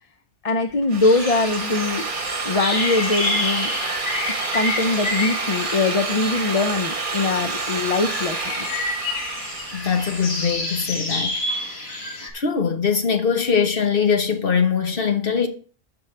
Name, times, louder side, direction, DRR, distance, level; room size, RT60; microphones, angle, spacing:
voice 1, 0.4-2.1 2.4-3.7 4.5-8.7, left 3 dB, 40° left, 0.6 m, -22 dB
Drill, 0.7-10.6, right 4 dB, 55° right, 1.1 m, -29 dB
sound 1, 1.0-12.3, left 2 dB, 85° left, 2.0 m, -29 dB
voice 2, 9.7-11.4 12.3-15.5, left 6 dB, 65° left, 1.4 m, -22 dB
14.5 x 5.4 x 3.2 m
omnidirectional pair, 1.0 m